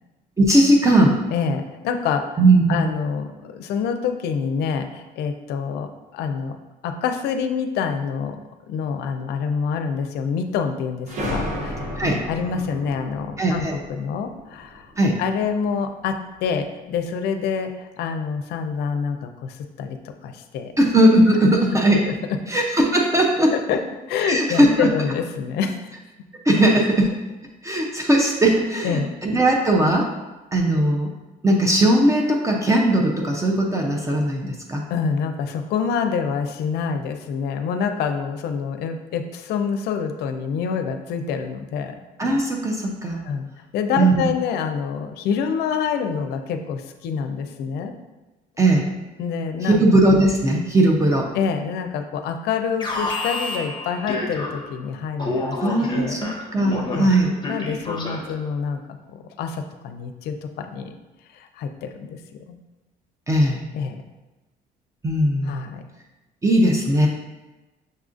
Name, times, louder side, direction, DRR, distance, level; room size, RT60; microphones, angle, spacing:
voice 1, 0.4-1.2 2.4-2.8 12.0-12.2 13.4-13.8 15.0-15.2 20.8-22.1 22.5-23.5 24.2-24.9 26.4-27.1 27.6-30.1 30.5-31.1 31.4-34.8 42.2-43.2 44.0-44.3 48.6-48.9 49.6-51.3 55.6-57.3 63.3-63.6 65.0-65.7 66.4-67.1, right 1 dB, 20° right, 0 dB, 0.4 m, -18 dB
voice 2, 1.3-2.4 2.7-6.6 6.8-8.4 8.7-14.9 15.2-20.7 22.1-22.4 23.5-23.8 24.1-25.8 28.8-29.1 34.9-42.0 43.1-43.5 43.7-47.9 49.2-49.9 51.3-56.2 56.9-57.1 57.5-58.8 59.1-60.9 61.3-62.6 63.7-64.0 65.4-65.8, left 6 dB, 75° left, 7 dB, 0.4 m, -27 dB
sound 1, 11.1-15.5, equal, 45° right, 0.8 m, -33 dB
Alarm, 52.8-54.8 55.2-58.4, left 2 dB, 25° left, 0.7 m, -29 dB
6.4 x 2.4 x 2.5 m, 1.1 s
cardioid pair, 110°, 17 cm